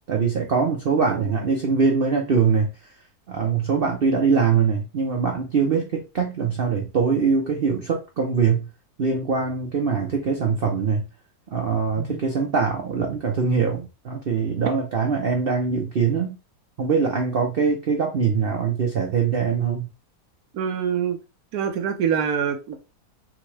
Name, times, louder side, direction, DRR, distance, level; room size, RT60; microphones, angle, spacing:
voice 1, 0.1-2.7 3.3-8.7 9.0-11.0 11.5-16.4 16.8-19.9, right 5 dB, 50° right, 0.7 m, -22 dB
voice 2, 1.0-1.3 12.0-12.2 20.5-21.2 21.5-22.9, right 7 dB, 70° right, 1.3 m, -25 dB
6.2 x 2.2 x 3.3 m
omnidirectional pair, 1.7 m